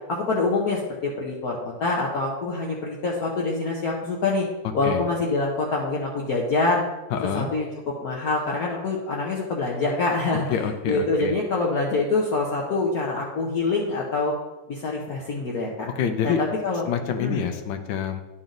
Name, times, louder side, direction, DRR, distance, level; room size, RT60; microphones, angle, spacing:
voice 1, 0.1-4.5 4.7-6.8 7.3-14.4 14.7-15.9 16.2-16.9 17.2-17.5, left 3 dB, 60° left, -2 dB, 1.2 m, -25 dB
voice 2, 7.1-7.5 10.5-11.3 16.0-16.4 16.9-18.2, left 7 dB, 75° left, 7 dB, 1.4 m, -26 dB
10.5 x 4.1 x 3.8 m, 1.1 s
omnidirectional pair, 2.1 m